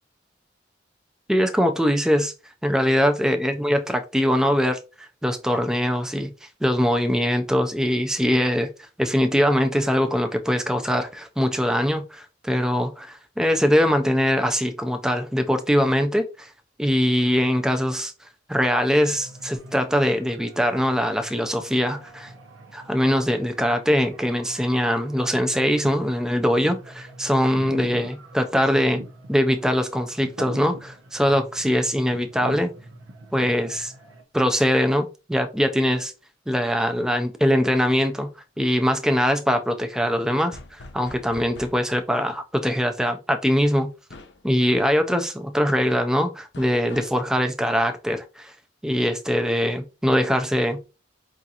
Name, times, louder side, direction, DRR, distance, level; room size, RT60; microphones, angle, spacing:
voice 1, 1.3-2.3 2.6-16.5 16.8-18.1 18.5-22.3 22.7-29.0 29.3-32.7 33.3-33.9 34.3-36.1 36.5-38.3 38.6-43.9 44.4-48.5 48.8-50.8, equal, 5° right, 0.3 m, -22 dB
sound 1, 19.1-34.2, right 1 dB, 85° right, 0.8 m, -42 dB
sound 2, 40.5-41.9 44.1-44.5 46.5-47.2, left 2 dB, 60° left, 0.6 m, -43 dB
4.9 x 2.4 x 2.7 m
head